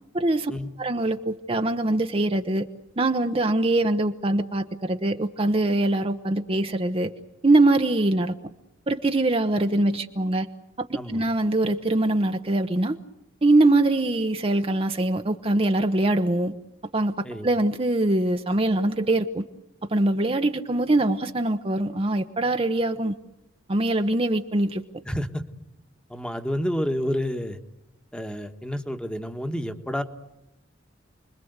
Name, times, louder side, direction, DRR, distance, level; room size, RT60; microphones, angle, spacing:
voice 1, 0.1-0.5 0.8-2.7 3.0-7.1 7.4-8.4 8.9-10.5 10.8-13.0 13.4-16.5 16.9-19.4 19.9-23.1 23.7-24.8, right 2 dB, 30° right, 6 dB, 0.9 m, -23 dB
voice 2, 25.0-25.4 26.1-27.6 28.1-30.0, equal, 5° left, 7 dB, 1.4 m, -29 dB
29.5 x 21.5 x 8.1 m, 0.88 s
head